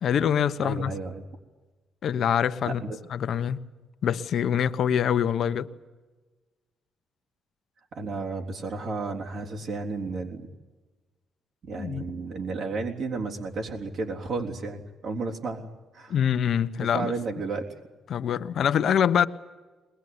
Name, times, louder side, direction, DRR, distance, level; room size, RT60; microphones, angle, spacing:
voice 1, 0.0-0.9 2.0-2.8 3.1-3.6 4.0-5.7 11.8-12.0 16.1-17.1 18.1-19.3, left 8 dB, 65° left, 1.1 m, -24 dB
voice 2, 0.6-1.2 2.7-3.0 7.9-10.5 11.6-15.7 15.9-16.2 16.8-17.6, right 3 dB, 65° right, 3.6 m, -32 dB
22.0 x 21.0 x 9.7 m
cardioid pair, 90°, 0 cm